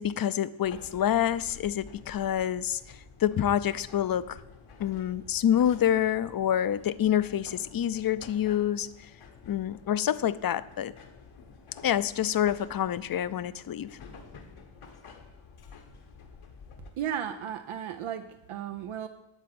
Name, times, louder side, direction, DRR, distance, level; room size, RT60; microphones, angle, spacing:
voice 1, 0.0-2.8 3.2-4.4 4.8-8.9 9.5-10.9 11.8-14.0, left 10 dB, 50° left, 16 dB, 0.5 m, -27 dB
sound 1, 0.6-16.9, left 5 dB, 85° left, 1.5 m, -51 dB
voice 2, 17.0-19.1, right 9 dB, 90° right, 8 dB, 0.6 m, -34 dB
11.5 x 4.3 x 7.7 m, 1.0 s
wide cardioid pair, 105°, 48 cm